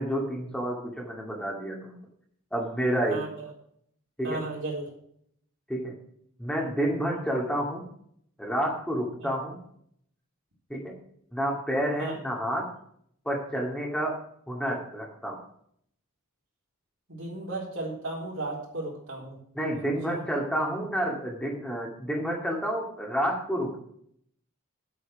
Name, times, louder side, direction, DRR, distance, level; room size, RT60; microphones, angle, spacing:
voice 1, 0.0-2.0 2.5-3.2 4.2-4.4 5.7-5.9 6.4-7.9 8.4-9.6 10.7-11.0 11.3-12.7 13.3-14.2 14.5-15.4 19.5-23.8, equal, 5° left, -1 dB, 2.1 m, -29 dB
voice 2, 3.1-3.5 4.2-4.9 9.2-9.3 12.0-12.2 17.1-19.4 20.1-20.2, right 2 dB, 60° right, -2 dB, 3.8 m, -35 dB
8.6 x 8.2 x 6.2 m, 0.66 s
head